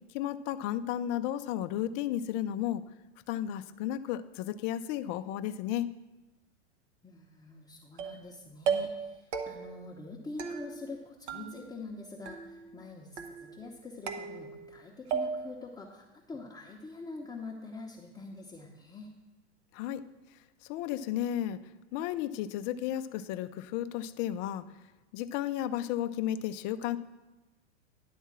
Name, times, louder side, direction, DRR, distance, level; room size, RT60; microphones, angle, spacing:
voice 1, 0.1-2.8 3.3-5.9 19.7-20.0 20.7-21.6 21.9-24.6 25.1-27.0, left 11 dB, 40° left, 11 dB, 0.4 m, -33 dB
voice 2, 7.0-19.1, left 3 dB, 10° left, -3 dB, 0.8 m, -45 dB
sound 1, 8.0-8.3 8.7-9.1 9.3-9.8 10.4-11.0 11.3-11.9 12.3-12.8 13.2-13.7 14.1-14.8 15.1-15.6, right 6 dB, 70° right, 1.1 m, -35 dB
10.0 x 3.6 x 7.3 m, 1.1 s
hypercardioid pair, 105°, 35 cm